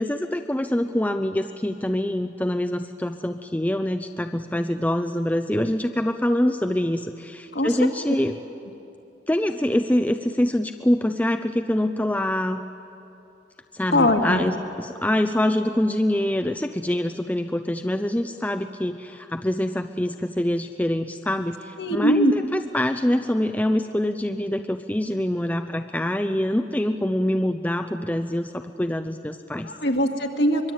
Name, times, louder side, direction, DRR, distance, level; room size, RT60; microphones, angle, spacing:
voice 1, 0.0-8.4 9.3-12.6 13.7-29.7, left 1 dB, 10° left, 7 dB, 0.5 m, -25 dB
voice 2, 13.9-14.5 21.8-22.3 29.6-30.7, equal, 60° left, 4 dB, 2.0 m, -21 dB
24.0 x 22.0 x 8.8 m, 2.8 s
head